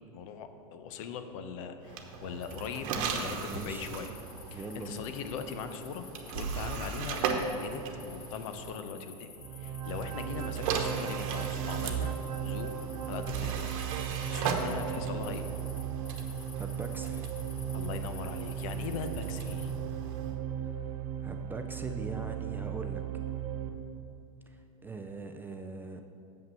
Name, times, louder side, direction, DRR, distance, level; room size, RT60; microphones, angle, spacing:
voice 1, 0.1-4.1 4.5-6.1 6.3-9.3 9.6-13.7 14.0-15.5 17.7-19.7, left 6 dB, 60° left, 8 dB, 0.8 m, -40 dB
sound 1, 1.8-8.8 9.8-20.4, right 5 dB, 65° right, 1.0 m, -38 dB
sound 2, 2.4-2.8 3.1-19.7, left 5 dB, 35° left, 1.4 m, -52 dB
voice 2, 2.8-3.9 4.5-5.1 16.6-17.3 20.6-20.7 21.2-23.0 24.5-26.0, right 3 dB, 10° right, 5 dB, 0.3 m, -42 dB
sound 3, 9.4-23.7, right 9 dB, 85° right, 0.8 m, -36 dB
7.4 x 5.7 x 6.6 m, 2.7 s
supercardioid pair, 125°, 19 cm